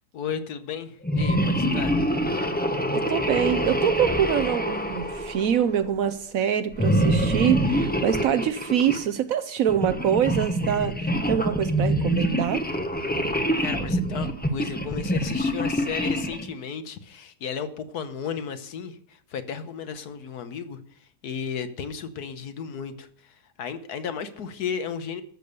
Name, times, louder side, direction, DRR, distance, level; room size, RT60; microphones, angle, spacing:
voice 1, 0.1-2.0 13.6-20.8 21.2-25.2, left 7 dB, 70° left, 1.4 m, -34 dB
sound 1, 1.0-5.9 6.7-9.1 9.7-16.5, equal, 10° left, 0.4 m, -25 dB
voice 2, 2.9-12.7, right 9 dB, 65° right, 0.9 m, -25 dB
13.0 x 6.9 x 6.7 m
omnidirectional pair, 1.8 m